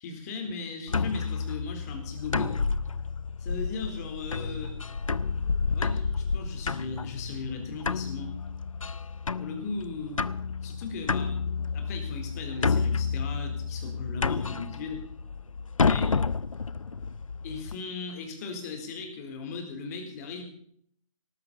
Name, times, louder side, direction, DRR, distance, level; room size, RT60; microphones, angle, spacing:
voice 1, 0.0-2.5 3.4-4.8 5.7-8.3 9.4-10.2 10.6-11.3 11.7-15.0 15.8-16.2 17.4-20.4, left 4 dB, 30° left, 4 dB, 3.8 m, -37 dB
sound 1, 0.9-17.8, left 5 dB, 70° left, 0.7 m, -30 dB
19.0 x 14.5 x 4.2 m, 0.64 s
figure-of-eight pair, 140°, 18 cm